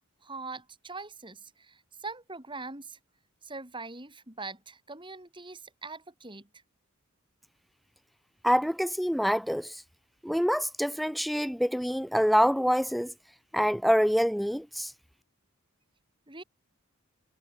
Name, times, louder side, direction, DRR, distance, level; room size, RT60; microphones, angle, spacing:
voice 1, 0.2-3.0 3.4-6.5 16.3-16.4, right 3 dB, 20° right, 5.8 m, -42 dB
voice 2, 8.4-9.8 10.2-13.1 13.5-14.9, equal, ahead, 0.9 m, -26 dB
head